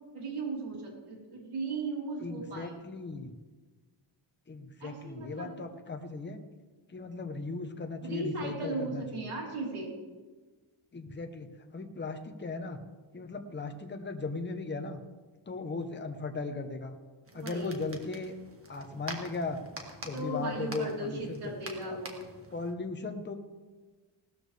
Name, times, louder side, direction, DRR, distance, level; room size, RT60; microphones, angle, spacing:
voice 1, 0.1-2.8 4.8-5.5 8.0-9.9 17.3-17.8 20.1-22.2, right 2 dB, 80° right, -3 dB, 4.1 m, -37 dB
voice 2, 2.2-3.3 4.5-6.4 6.9-9.4 10.9-11.5 11.7-12.8 13.1-15.0 15.5-17.0 17.3-18.3 18.7-19.6 20.0-21.5 21.8-22.0 22.5-23.3, left 3 dB, 20° left, 5 dB, 1.0 m, -37 dB
sound 1, 17.2-22.7, right 2 dB, 25° right, 1.8 m, -46 dB
18.5 x 13.0 x 3.4 m, 1.3 s
wide cardioid pair, 160°, 50 cm